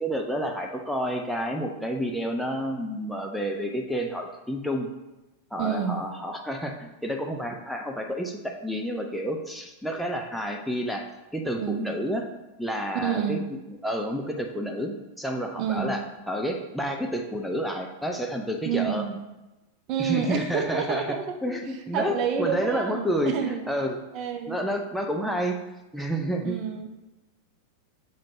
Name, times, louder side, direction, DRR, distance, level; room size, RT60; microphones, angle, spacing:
voice 1, 0.0-4.9 5.5-11.1 11.3-12.2 12.6-13.4 13.7-16.0 16.3-19.0 20.0-24.0 24.5-25.5 25.9-26.5, equal, ahead, 1 dB, 0.6 m, -30 dB
voice 2, 5.6-6.0 11.6-11.9 13.0-13.4 15.6-15.9 18.6-19.1 19.9-21.4 21.9-23.7 24.1-24.6 26.4-26.9, right 8 dB, 40° right, 4 dB, 0.8 m, -28 dB
7.0 x 5.1 x 2.7 m, 1.0 s
figure-of-eight pair, 90°, 0 cm